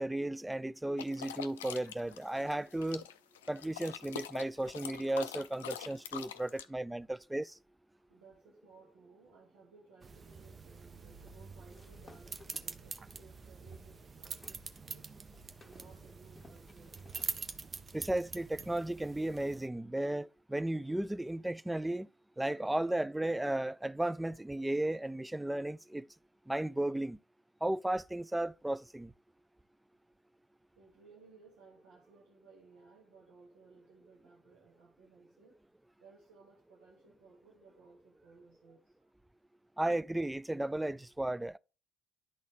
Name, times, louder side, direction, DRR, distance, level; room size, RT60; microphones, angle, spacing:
voice 1, 0.0-3.0 3.5-7.5 17.9-22.1 22.4-26.0 26.5-27.2 27.6-29.1 39.8-41.6, right 1 dB, 10° right, 0.3 m, -34 dB
sound 1, 1.0-6.6, left 10 dB, 75° left, 0.4 m, -44 dB
voice 2, 6.4-6.8 7.2-7.3 7.9-15.1 15.6-17.7 30.8-35.6 36.0-39.1, right 4 dB, 70° right, 1.1 m, -60 dB
sound 2, 10.0-19.7, right 4 dB, 30° right, 0.7 m, -45 dB
sound 3, 11.7-14.6 15.0-17.4, left 3 dB, 20° left, 0.8 m, -61 dB
11.0 x 4.1 x 3.3 m
figure-of-eight pair, 45°, 0 cm